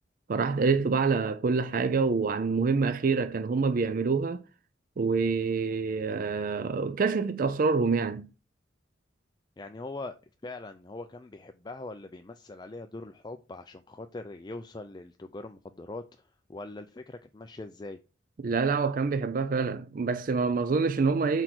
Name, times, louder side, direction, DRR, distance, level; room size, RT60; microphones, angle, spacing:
voice 1, 0.3-4.4 5.0-8.3 18.4-21.4, right 4 dB, 45° right, 0.4 m, -26 dB
voice 2, 9.6-10.2 10.4-18.0, left 2 dB, 20° left, 0.4 m, -42 dB
6.3 x 4.5 x 6.0 m
head